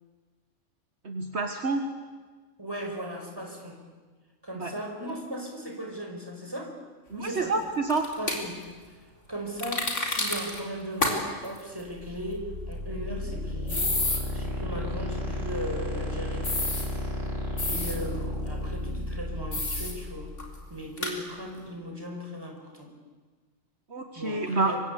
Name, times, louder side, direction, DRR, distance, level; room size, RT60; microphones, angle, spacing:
voice 1, 1.0-1.8 4.6-4.7 7.1-8.1 23.9-24.7, right 3 dB, 55° right, 5 dB, 1.9 m, -28 dB
voice 2, 2.6-3.8 4.4-6.7 7.1-7.5 8.2-8.6 8.9-9.0 9.3-13.9 14.3-16.7 17.7-20.3 20.7-22.9 24.2-24.8, equal, 15° right, 2 dB, 5.1 m, -37 dB
sound 1, 7.9-8.4 9.6-10.6 11.0-11.1 11.4-11.6 13.7-14.2 16.4-16.9 17.6-18.0 19.5-19.9 20.4-20.5 21.0-21.1, left 2 dB, 65° left, 4.2 m, -28 dB
sound 2, 11.9-20.7, left 1 dB, 75° right, 5.0 m, -33 dB
26.5 x 24.0 x 8.4 m, 1.4 s
omnidirectional pair, 1.3 m